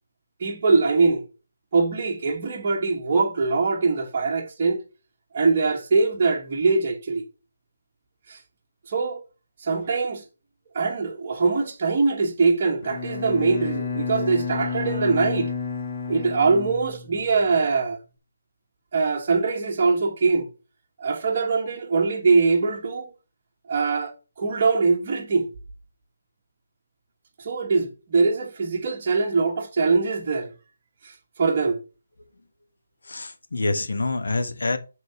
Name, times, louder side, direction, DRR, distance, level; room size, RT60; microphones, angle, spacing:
voice 1, 0.4-1.2 1.7-4.8 5.3-7.2 8.3-8.4 8.9-9.2 9.6-10.2 10.7-15.5 16.1-18.0 18.9-20.5 21.0-23.1 23.7-24.1 24.4-25.5 27.4-30.5 31.4-31.8, right 4 dB, 25° right, 1.3 m, -22 dB
Bowed string instrument, 12.8-17.6, left 5 dB, 30° left, 1.0 m, -30 dB
voice 2, 33.1-34.8, left 2 dB, 80° left, 1.4 m, -26 dB
8.3 x 3.9 x 5.8 m
hypercardioid pair, 180°, 0 cm